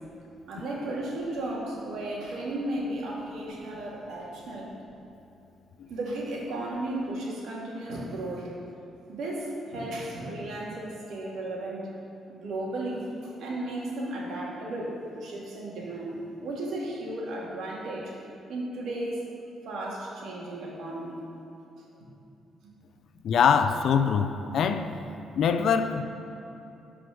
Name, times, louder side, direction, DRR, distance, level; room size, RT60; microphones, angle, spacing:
voice 1, 0.5-4.7 5.9-8.5 9.1-11.9 12.3-18.1 18.5-19.3 19.7-21.2, right 1 dB, 75° right, -3 dB, 2.3 m, -34 dB
voice 2, 23.2-24.9 25.4-26.0, left 7 dB, 65° left, 9 dB, 0.6 m, -23 dB
12.5 x 5.0 x 6.4 m, 2.8 s
cardioid pair, 90°, 0 cm